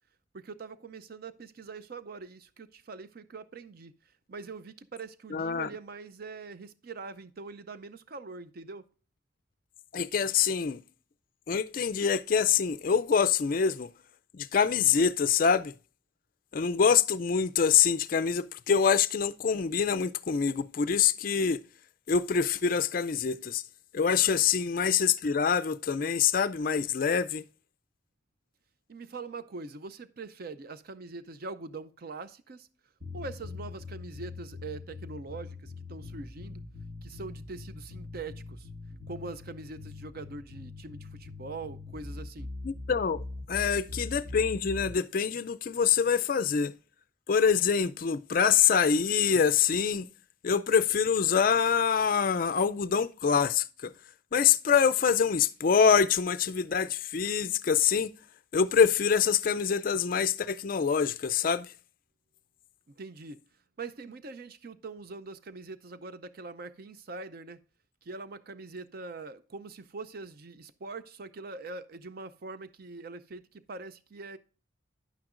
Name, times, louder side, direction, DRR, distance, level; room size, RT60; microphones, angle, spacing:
voice 1, 0.3-3.9 4.3-8.8 28.9-32.7 33.1-36.6 37.0-38.7 39.1-42.5 63.0-63.4 63.8-67.6 68.0-74.4, right 3 dB, 50° right, 0.5 m, -43 dB
voice 2, 5.3-5.7 9.9-10.8 11.5-13.9 14.3-15.7 16.5-21.6 22.1-23.6 23.9-27.4 42.6-46.7 47.3-50.1 50.4-53.9 54.3-58.1 58.5-61.7, left 6 dB, 45° left, 0.4 m, -25 dB
sound 1, 33.0-44.9, left 3 dB, 85° right, 1.8 m, -42 dB
10.0 x 8.9 x 2.5 m
head